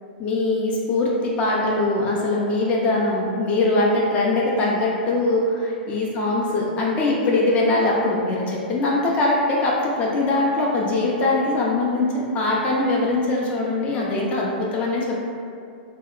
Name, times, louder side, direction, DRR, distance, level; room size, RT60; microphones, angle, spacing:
voice 1, 0.2-15.2, left 2 dB, 25° left, -3 dB, 0.4 m, -22 dB
2.7 x 2.1 x 2.3 m, 2.3 s
hypercardioid pair, 130°, 5 cm